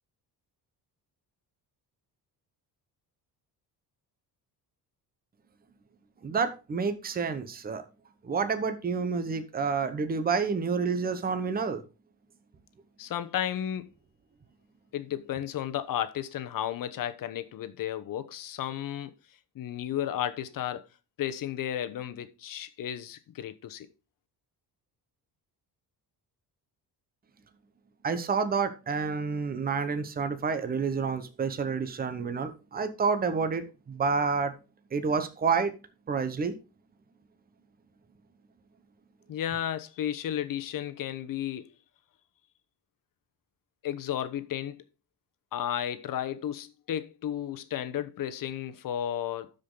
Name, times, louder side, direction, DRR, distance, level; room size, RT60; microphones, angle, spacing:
voice 1, 6.2-7.8 8.2-11.8 28.0-34.5 34.9-35.7 36.1-36.5, right 5 dB, 25° right, 0.9 m, -29 dB
voice 2, 13.0-13.9 14.9-19.1 19.5-20.8 21.2-23.9 39.3-41.7 43.8-44.8 45.5-49.5, left 10 dB, 55° left, 1.0 m, -33 dB
12.5 x 5.2 x 3.9 m
cardioid pair, 170°, 40 cm